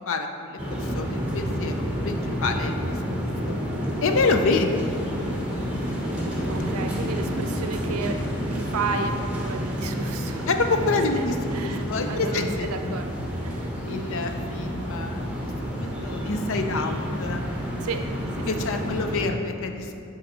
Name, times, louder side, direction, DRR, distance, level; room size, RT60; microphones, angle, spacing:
voice 1, 0.1-3.6 4.0-5.1 10.5-13.0 13.8-15.2 15.6-17.4 18.5-20.0, left 3 dB, 65° left, 6 dB, 0.5 m, -27 dB
sound 1, 0.6-19.3, equal, 5° right, 1.1 m, -29 dB
voice 2, 6.5-8.2 8.5-10.5 10.7-11.0 11.5-13.1 13.4-13.7 17.8-18.0 18.3-18.8, right 4 dB, 85° right, 7 dB, 0.5 m, -33 dB
7.8 x 3.9 x 4.2 m, 2.7 s
head